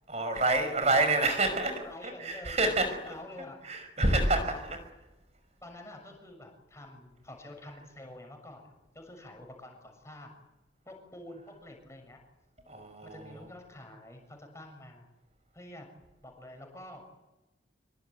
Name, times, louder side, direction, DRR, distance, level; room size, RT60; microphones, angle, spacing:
voice 1, 0.1-3.0 3.6-4.8 7.7-7.8 12.7-13.5, right 2 dB, 35° right, 8 dB, 5.6 m, -28 dB
voice 2, 1.8-2.7 3.0-3.6 4.0-4.6 5.6-10.4 10.8-12.2 13.0-15.1 15.5-15.9 16.2-17.0, left 1 dB, 15° left, 3 dB, 6.8 m, -48 dB
26.5 x 24.0 x 9.2 m, 1.1 s
head